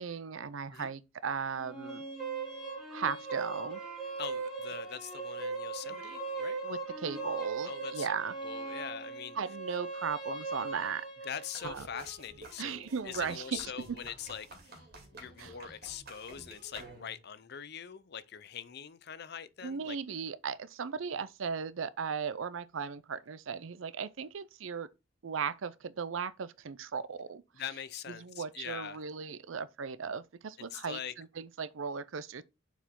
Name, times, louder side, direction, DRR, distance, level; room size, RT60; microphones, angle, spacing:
voice 1, 0.0-2.0 2.9-3.8 6.6-8.3 9.4-11.1 11.6-11.9 12.6-13.6 15.4-15.5 19.6-24.9 25.2-27.4 28.2-32.4, right 6 dB, 75° right, 0.5 m, -37 dB
sound 1, 1.6-11.5, right 4 dB, ahead, 2.6 m, -39 dB
voice 2, 4.2-6.6 7.7-8.1 8.4-9.4 11.2-14.8 15.1-20.0 27.5-29.0 30.7-31.1, left 8 dB, 55° left, 0.6 m, -43 dB
sound 2, 11.5-17.3, right 2 dB, 50° right, 2.5 m, -51 dB
6.9 x 4.8 x 3.7 m
head